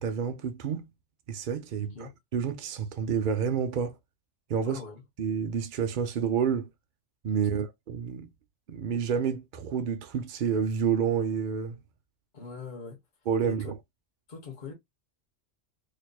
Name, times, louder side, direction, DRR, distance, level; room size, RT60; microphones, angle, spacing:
voice 1, 0.0-0.9 1.3-4.0 4.5-4.8 5.2-6.7 7.2-8.3 8.7-11.8 13.3-13.7, right 7 dB, 55° right, 0.6 m, -29 dB
voice 2, 1.8-2.2 4.6-5.0 7.3-7.7 12.3-13.0 13.4-13.7 14.3-14.7, left 4 dB, 40° left, 1.3 m, -42 dB
4.5 x 2.7 x 2.2 m
omnidirectional pair, 1.2 m